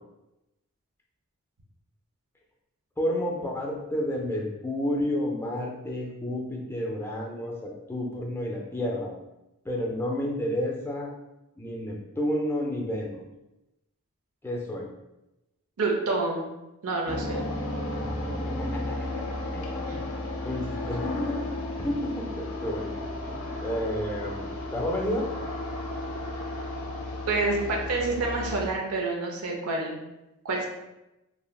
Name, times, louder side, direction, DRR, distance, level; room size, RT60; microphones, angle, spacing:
voice 1, 3.0-9.1 9.6-11.1 11.6-13.2 14.4-14.9 18.0-19.1 19.5-20.0 20.4-21.4 21.8-22.9 23.3-25.3, left 1 dB, 10° left, -1 dB, 0.4 m, -31 dB
voice 2, 15.8-16.5 16.8-17.4 19.9-20.0 27.3-30.0 30.4-30.7, right 3 dB, 80° right, 0 dB, 0.6 m, -28 dB
sound 1, 17.1-28.7, left 1 dB, 80° left, 0.6 m, -33 dB
3.1 x 2.6 x 2.3 m, 0.95 s
head